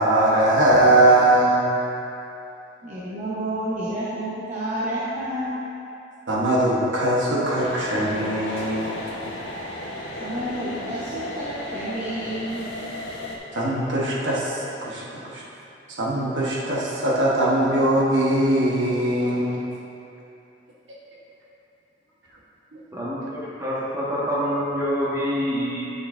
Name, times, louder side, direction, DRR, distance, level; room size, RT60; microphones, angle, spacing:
voice 1, 0.0-1.6 6.3-8.9 13.5-15.4 16.0-19.6 22.7-22.8, right 1 dB, 85° right, -5 dB, 1.2 m, -21 dB
voice 2, 2.8-5.6 10.2-12.7 14.1-14.2, right 1 dB, 40° right, -10 dB, 1.0 m, -30 dB
sound 1, 7.6-13.4, left 1 dB, 85° left, 0.9 m, -34 dB
voice 3, 22.9-25.9, equal, 15° right, -8 dB, 1.4 m, -26 dB
9.9 x 6.3 x 2.5 m, 2.9 s
head